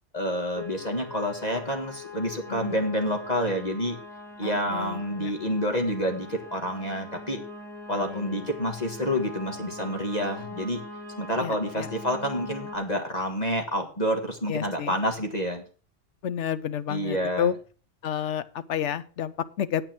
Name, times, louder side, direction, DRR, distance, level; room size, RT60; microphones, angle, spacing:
voice 1, 0.1-4.0 4.4-7.4 7.9-10.8 11.2-15.6 16.9-17.5, equal, 35° left, 4 dB, 1.6 m, -28 dB
sound 1, 0.5-12.8, left 3 dB, ahead, 2.1 m, -41 dB
voice 2, 2.5-2.8 4.4-5.3 8.0-8.5 11.4-11.9 14.5-15.0 16.2-17.5 18.0-19.8, left 9 dB, 75° left, 14 dB, 1.1 m, -31 dB
9.2 x 8.7 x 5.9 m, 0.38 s
omnidirectional pair, 1.2 m